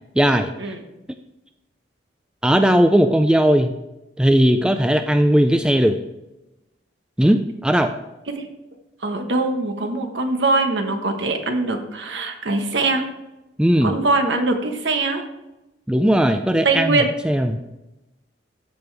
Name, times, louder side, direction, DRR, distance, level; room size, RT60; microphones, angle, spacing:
voice 1, 0.2-0.5 2.4-3.7 4.2-6.0 7.2-7.9 13.6-13.9 15.9-17.6, equal, 5° right, 7 dB, 0.3 m, -17 dB
voice 2, 9.0-13.0 13.8-15.2 16.6-17.1, right 3 dB, 70° right, 5 dB, 1.1 m, -22 dB
13.5 x 5.3 x 3.4 m, 0.97 s
head